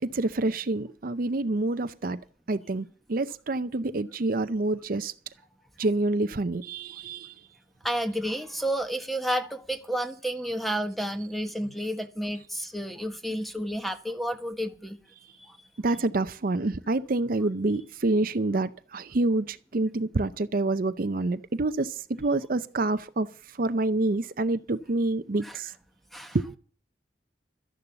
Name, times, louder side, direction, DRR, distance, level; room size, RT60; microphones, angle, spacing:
voice 1, 0.0-2.2 2.5-5.1 5.8-7.3 15.8-25.7 26.3-26.6, right 2 dB, 50° right, 0.6 m, -27 dB
voice 2, 7.8-15.0 15.4-15.6 25.4-25.6 26.1-26.4, equal, ahead, 1.3 m, -31 dB
13.0 x 11.0 x 6.9 m
head